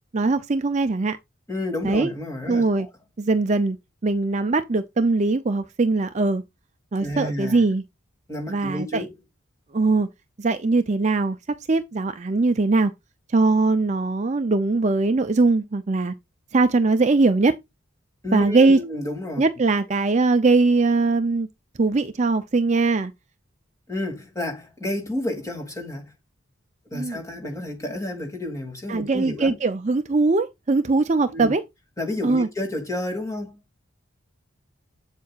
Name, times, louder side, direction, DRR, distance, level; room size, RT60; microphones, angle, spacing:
voice 1, 0.1-1.2 1.8-2.1 2.5-2.9 3.2-3.8 4.0-6.4 6.9-7.8 8.5-9.1 9.7-10.1 10.4-11.4 11.7-12.9 13.3-16.1 16.5-17.6 18.3-18.8 19.4-21.5 21.8-23.1 26.9-27.2 28.9-31.6 32.2-32.5, right 3 dB, 35° right, 0.5 m, -21 dB
voice 2, 1.5-2.9 7.0-7.6 8.3-9.1 18.2-19.4 23.9-26.1 26.9-29.6 31.3-31.5 32.0-33.6, left 1 dB, 15° left, 2.6 m, -30 dB
8.2 x 7.4 x 2.4 m
head